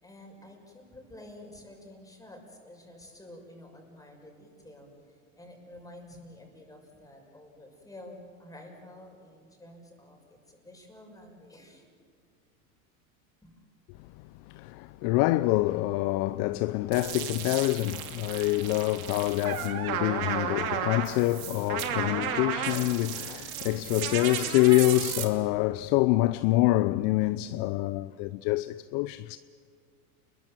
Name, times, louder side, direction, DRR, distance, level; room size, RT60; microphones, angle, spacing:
voice 1, 0.0-11.9 13.4-13.5, left 1 dB, 10° left, 6.2 m, -50 dB
voice 2, 14.5-29.4, left 18 dB, 50° left, 0.6 m, -26 dB
sound 1, 16.9-25.2, right 8 dB, 80° right, 2.9 m, -34 dB
29.5 x 22.0 x 7.8 m
supercardioid pair, 110°, 42 cm